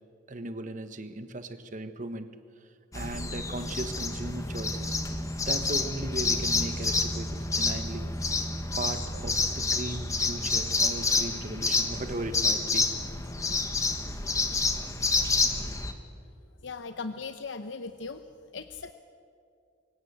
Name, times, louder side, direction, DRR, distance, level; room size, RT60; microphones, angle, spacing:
voice 1, 0.3-2.4 2.9-5.0 5.5-8.4 8.8-12.9 13.5-13.6, right 2 dB, 40° right, 10 dB, 1.2 m, -37 dB
sound 1, 2.9-15.9, left 3 dB, 15° left, 1.3 m, -29 dB
voice 2, 16.6-18.2 18.5-18.9, left 4 dB, 70° left, 9 dB, 0.8 m, -38 dB
24.5 x 17.0 x 8.1 m, 2.4 s
head